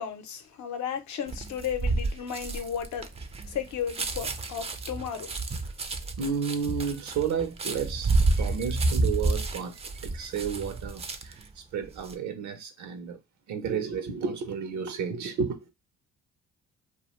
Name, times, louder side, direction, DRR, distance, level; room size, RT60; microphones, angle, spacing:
voice 1, 0.0-3.1 3.5-5.3, left 8 dB, 70° left, 0.6 m, -34 dB
sound 1, 1.3-11.4 11.8-12.1, right 3 dB, 20° right, 0.3 m, -29 dB
voice 2, 6.2-13.2 13.5-15.7, right 6 dB, 70° right, 0.6 m, -32 dB
2.4 x 2.2 x 2.9 m
cardioid pair, 90°, 30 cm